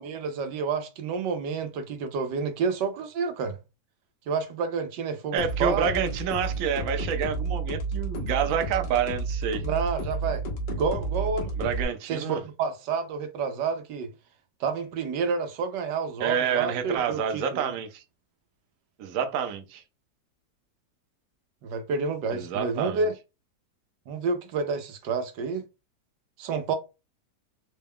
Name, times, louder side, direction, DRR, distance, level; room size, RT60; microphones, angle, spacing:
voice 1, 0.0-3.6 4.3-5.9 9.6-10.4 10.7-11.5 12.0-14.1 14.6-17.7 21.6-23.1 24.1-25.6 26.4-26.8, right 5 dB, 90° right, 1.4 m, -29 dB
voice 2, 5.3-9.6 11.6-12.4 16.2-18.0 19.0-19.8 22.3-23.1, right 7 dB, 65° right, 0.9 m, -28 dB
sound 1, 5.4-11.8, right 3 dB, 80° left, 1.6 m, -31 dB
4.0 x 2.2 x 3.5 m
omnidirectional pair, 1.8 m